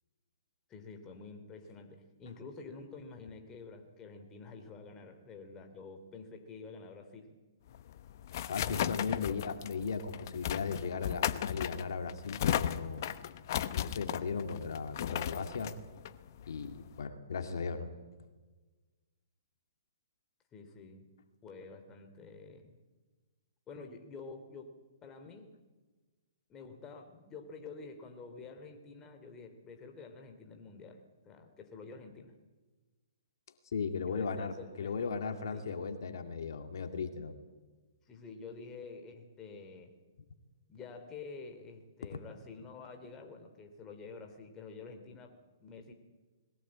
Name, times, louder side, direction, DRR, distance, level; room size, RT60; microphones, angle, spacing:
voice 1, 0.7-7.4 9.2-9.4 20.5-21.1 21.4-22.7 23.7-24.7 25.0-25.6 26.5-32.3 34.0-35.1 35.5-35.8 38.1-39.9 40.7-45.9, left 4 dB, 20° left, 5 dB, 2.9 m, -49 dB
sound 1, 7.7-17.0, left 11 dB, 55° left, 1.0 m, -36 dB
voice 2, 8.5-13.1 13.7-15.7 16.5-17.9 33.7-37.3 42.1-42.2, left 5 dB, 70° left, 7 dB, 2.2 m, -37 dB
21.5 x 17.5 x 8.7 m, 1.3 s
hypercardioid pair, 135°, 2 cm